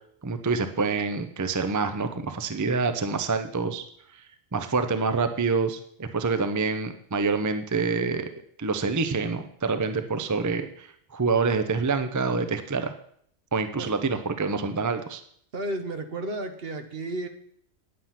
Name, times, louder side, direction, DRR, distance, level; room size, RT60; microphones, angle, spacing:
voice 1, 0.2-3.8 4.5-10.9 11.1-12.9 13.5-15.2, right 4 dB, 20° right, 9 dB, 0.5 m, -27 dB
voice 2, 15.5-17.3, right 2 dB, 60° right, 7 dB, 1.2 m, -32 dB
9.6 x 7.6 x 5.8 m, 0.66 s
omnidirectional pair, 1.1 m